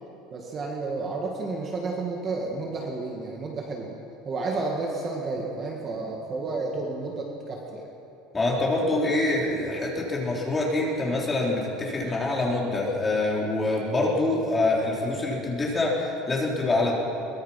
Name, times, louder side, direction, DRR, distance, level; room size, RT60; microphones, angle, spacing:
voice 1, 0.3-4.0 4.3-7.9, right 3 dB, 25° right, -1 dB, 2.0 m, -31 dB
voice 2, 8.3-16.9, left 2 dB, 15° left, -3 dB, 3.8 m, -25 dB
23.0 x 21.0 x 5.9 m, 2.8 s
cardioid pair, 175°, 0 cm